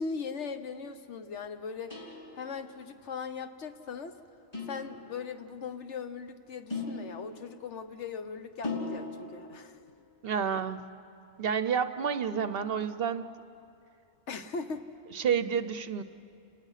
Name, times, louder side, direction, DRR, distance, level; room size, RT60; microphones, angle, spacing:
voice 1, 0.0-2.0 2.3-4.1 4.7-9.8 14.3-14.9, left 5 dB, 70° left, 8 dB, 1.3 m, -39 dB
sound 1, 1.9-2.8 4.5-5.4 6.7-7.8 8.6-9.6, left 3 dB, 20° left, 3.7 m, -39 dB
voice 2, 10.2-10.9 11.4-13.3 15.1-16.0, right 7 dB, 60° right, 12 dB, 0.8 m, -29 dB
29.5 x 19.0 x 5.7 m, 2.6 s
omnidirectional pair, 1.2 m